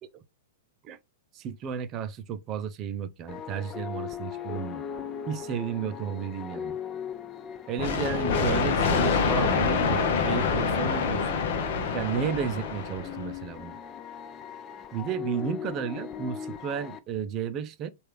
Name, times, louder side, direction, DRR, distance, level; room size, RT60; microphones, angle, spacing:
voice 1, 1.3-4.8 5.3-6.8 7.7-11.4 11.9-13.8 14.9-17.9, right 7 dB, 35° right, 0.5 m, -33 dB
sound 1, 3.3-17.0, left 7 dB, 25° left, 0.4 m, -39 dB
sound 2, 7.8-13.4, left 5 dB, 60° left, 0.8 m, -26 dB
3.2 x 2.5 x 3.3 m
hypercardioid pair, 105°, 0 cm